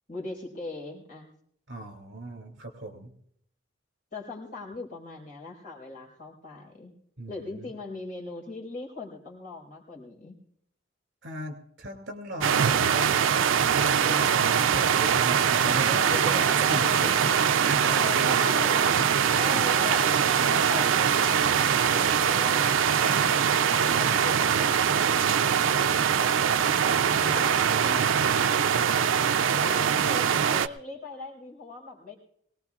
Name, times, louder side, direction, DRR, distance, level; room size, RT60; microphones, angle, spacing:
voice 1, 0.1-1.3 4.1-6.9 7.3-10.3 15.8-17.5 17.8-19.0 19.4-21.4 21.9-27.6 29.5-32.2, left 3 dB, 45° left, -4 dB, 4.6 m, -40 dB
voice 2, 1.7-3.1 7.2-7.7 11.2-13.2 13.8-16.3 16.7-17.3 17.6-18.5 19.0-19.1 19.5-19.7 20.4-20.5 22.3-22.4 23.0-23.1 27.0-28.1 28.7-28.9, right 1 dB, 65° right, 6 dB, 2.7 m, -37 dB
sound 1, 12.4-30.7, right 8 dB, 85° right, 0.5 m, -23 dB
22.0 x 18.5 x 2.4 m, 0.68 s
head